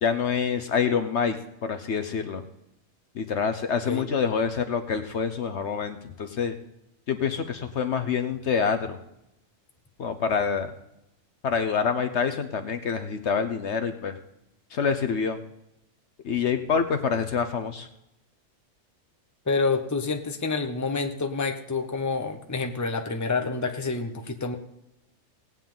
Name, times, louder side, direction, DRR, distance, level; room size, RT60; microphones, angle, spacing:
voice 1, 0.0-2.4 3.1-6.5 7.1-9.0 10.0-10.7 11.4-14.2 14.7-15.4 16.2-17.9, left 6 dB, 60° left, 8 dB, 1.1 m, -26 dB
voice 2, 19.5-24.5, left 4 dB, 15° left, 4 dB, 0.9 m, -28 dB
18.0 x 9.0 x 3.8 m, 0.85 s
omnidirectional pair, 1.4 m